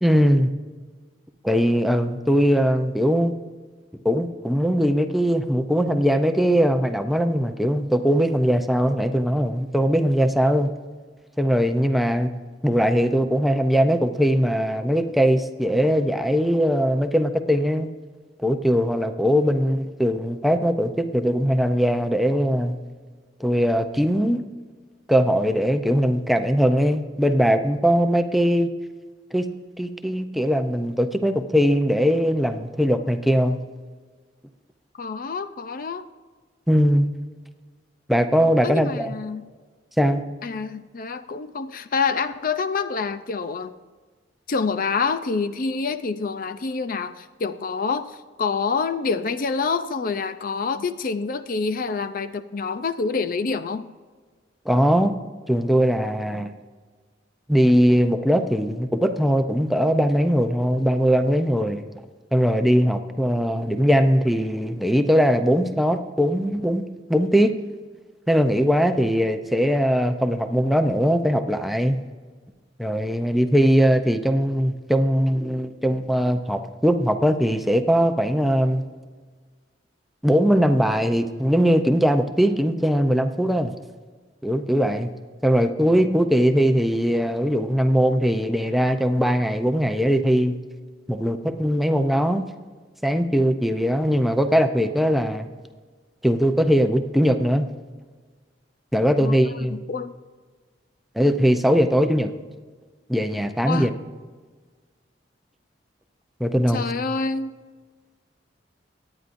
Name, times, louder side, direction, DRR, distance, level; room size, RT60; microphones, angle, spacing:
voice 1, 0.0-0.5 1.4-3.3 4.0-10.7 11.4-12.3 12.6-17.9 18.4-22.8 23.4-24.4 25.1-28.7 29.3-29.5 29.8-33.6 36.7-37.1 38.1-39.1 40.0-40.2 54.7-55.2 55.5-56.5 57.5-61.8 62.3-66.8 67.1-67.5 68.3-72.0 72.8-78.8 80.2-83.7 84.4-85.1 85.4-90.6 91.1-92.5 93.0-95.5 96.2-97.7 98.9-99.8 101.2-102.3 103.1-103.9 106.4-106.8, equal, ahead, 7 dB, 0.6 m, -20 dB
voice 2, 35.0-36.0 38.6-39.4 40.4-43.7 44.5-53.9 99.2-100.1 103.7-103.9 106.7-107.5, left 4 dB, 50° left, 10 dB, 0.5 m, -27 dB
23.0 x 9.7 x 2.6 m, 1.4 s
head